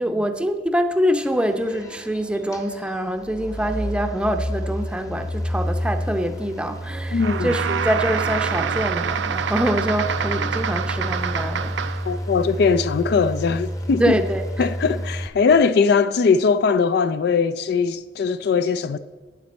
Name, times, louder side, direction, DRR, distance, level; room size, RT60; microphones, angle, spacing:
voice 1, 0.0-11.8 14.0-14.7, equal, 5° right, 0.6 m, -24 dB
sound 1, 1.2-15.3, equal, 20° left, 0.8 m, -30 dB
voice 2, 7.1-7.5 12.1-14.2 14.6-19.0, left 5 dB, 65° left, 0.4 m, -20 dB
sound 2, 7.2-12.2, right 7 dB, 85° right, 0.5 m, -26 dB
12.0 x 8.9 x 4.2 m
head